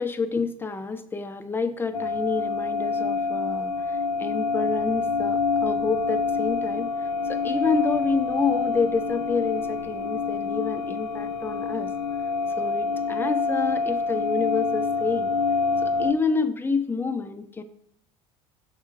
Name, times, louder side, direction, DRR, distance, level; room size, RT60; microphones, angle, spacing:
voice 1, 0.0-6.9 7.3-11.9 12.6-15.3 15.8-17.6, left 4 dB, 10° left, 8 dB, 0.6 m, -28 dB
sound 1, 1.9-16.1, left 4 dB, 85° left, 0.5 m, -26 dB
5.7 x 3.7 x 5.7 m, 0.75 s
hypercardioid pair, 70°, 19 cm